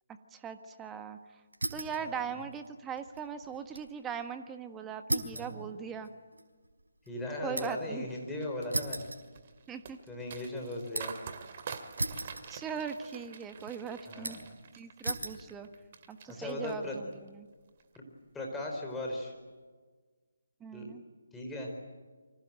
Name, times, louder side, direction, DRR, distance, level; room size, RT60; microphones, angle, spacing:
voice 1, 0.3-1.2 1.7-6.1 7.4-8.1 9.7-10.0 10.9-11.0 12.5-14.4 14.8-15.7 16.1-17.0 17.4-17.5 20.6-21.0, right 7 dB, 10° right, 8 dB, 1.4 m, -40 dB
sound 1, 1.5-2.0 2.4-3.9 4.2-4.3 5.1-7.9 8.7-9.8 10.2-11.3 12.0-12.9 13.1-13.7 14.2-14.6 15.0-15.4 16.1-16.5, right 2 dB, 75° right, 4.3 m, -37 dB
voice 2, 2.0-2.4 5.2-5.6 7.1-9.1 10.1-11.2 14.1-14.5 16.3-17.0 17.9-18.1 18.3-19.3 20.7-20.9 21.3-21.7, left 1 dB, 5° left, -2 dB, 4.8 m, -38 dB
sound 2, 8.1-16.3 16.6-17.3 17.7-18.0, right 6 dB, 35° right, 2.5 m, -47 dB
29.0 x 25.0 x 7.8 m, 1.4 s
figure-of-eight pair, 150°, 0 cm